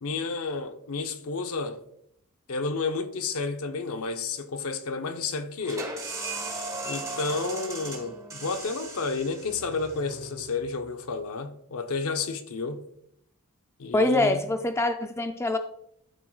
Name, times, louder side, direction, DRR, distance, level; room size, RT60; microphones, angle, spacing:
voice 1, 0.0-1.8 2.5-6.0 6.8-12.9 13.8-14.4, left 4 dB, 65° left, 0.6 m, -31 dB
sound 1, 5.6-11.1, right 2 dB, 15° right, 1.2 m, -37 dB
voice 2, 13.9-15.6, left 2 dB, 10° left, 0.3 m, -24 dB
12.0 x 4.5 x 2.3 m
head